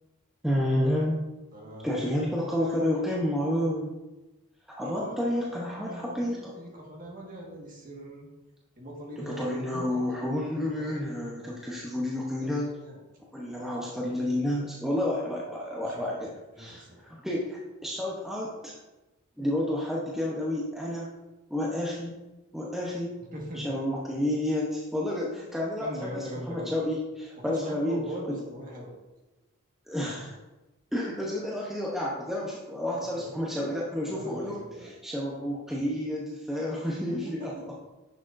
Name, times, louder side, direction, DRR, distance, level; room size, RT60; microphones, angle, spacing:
voice 1, 0.4-1.2 1.8-3.9 4.7-6.5 9.2-12.7 13.3-16.3 16.6-16.8 17.2-18.7 19.4-21.1 21.5-22.2 22.5-23.1 23.5-28.0 28.3-28.4 29.9-30.3 30.9-37.5, left 1 dB, ahead, -4 dB, 0.9 m, -30 dB
voice 2, 1.5-3.5 4.8-8.3 8.8-11.1 12.4-13.0 15.8-16.1 16.6-17.0 23.3-23.7 25.8-26.7 27.4-28.9 32.9-33.3 34.1-34.9 37.1-37.7, equal, 40° right, -2 dB, 1.7 m, -41 dB
10.0 x 6.3 x 2.6 m, 1.1 s
head